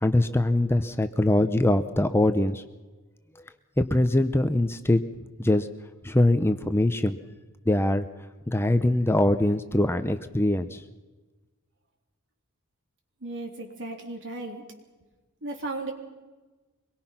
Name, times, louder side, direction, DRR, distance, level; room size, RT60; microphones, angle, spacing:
voice 1, 0.0-2.6 3.8-5.0 5.4-5.7 6.0-7.2 7.7-8.1 8.5-10.8, left 1 dB, 10° left, 10 dB, 0.7 m, -22 dB
voice 2, 13.2-14.6 15.4-15.9, right 2 dB, 60° right, 3 dB, 3.6 m, -35 dB
24.5 x 22.0 x 5.9 m, 1.2 s
head